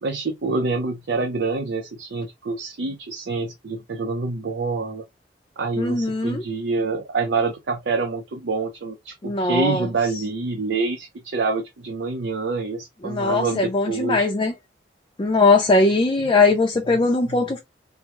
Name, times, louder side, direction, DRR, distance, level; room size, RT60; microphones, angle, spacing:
voice 1, 0.0-5.0 5.6-14.3 16.9-17.0 17.3-17.4, right 3 dB, 80° right, 0.6 m, -26 dB
voice 2, 5.8-6.4 9.2-9.9 13.0-14.5 15.2-17.6, left 3 dB, 25° left, 0.5 m, -20 dB
3.5 x 2.0 x 2.9 m
head